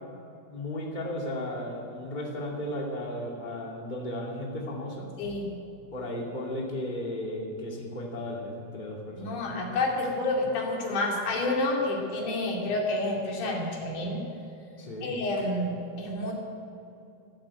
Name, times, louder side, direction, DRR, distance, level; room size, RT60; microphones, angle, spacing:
voice 1, 0.5-5.1 5.9-9.4 14.8-15.1, left 1 dB, 15° left, -1 dB, 1.8 m, -35 dB
voice 2, 5.2-5.5 9.2-14.2 15.0-16.3, left 2 dB, 55° left, -1 dB, 3.8 m, -29 dB
12.5 x 12.5 x 8.9 m, 2.7 s
omnidirectional pair, 4.4 m